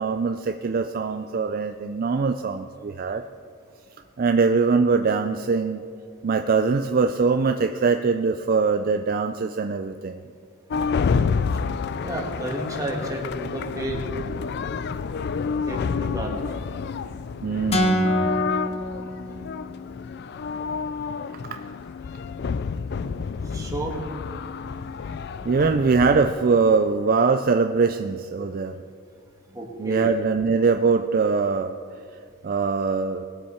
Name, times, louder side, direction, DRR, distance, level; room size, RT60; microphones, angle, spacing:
voice 1, 0.0-3.2 4.2-5.8 6.2-10.2 17.4-18.4 21.5-21.6 25.5-28.8 29.8-31.7 32.4-33.3, right 4 dB, 40° right, 7 dB, 0.4 m, -22 dB
sound 1, 10.7-26.3, left 5 dB, 50° left, 0.3 m, -29 dB
voice 2, 12.0-14.0 15.7-16.4 23.5-23.9 29.5-30.1, right 1 dB, 15° right, -1 dB, 1.6 m, -31 dB
sound 2, 17.7-19.8, equal, 30° left, 0.9 m, -25 dB
20.0 x 7.5 x 4.4 m, 2.3 s
head